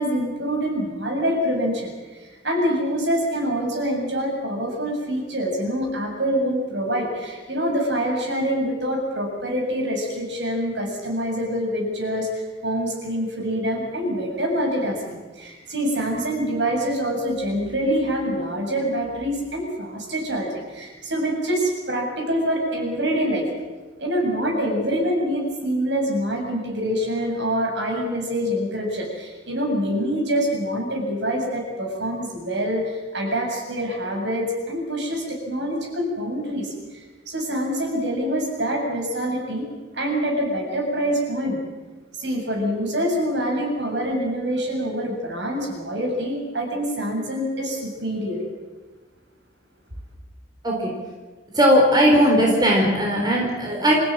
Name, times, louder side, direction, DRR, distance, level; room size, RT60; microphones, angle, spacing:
voice 1, 0.0-23.5 24.0-39.7 39.9-41.6 42.1-48.4, equal, 65° right, 1 dB, 7.6 m, -25 dB
voice 2, 51.5-54.0, equal, 20° right, -1 dB, 4.4 m, -18 dB
26.5 x 16.0 x 8.8 m, 1.3 s
head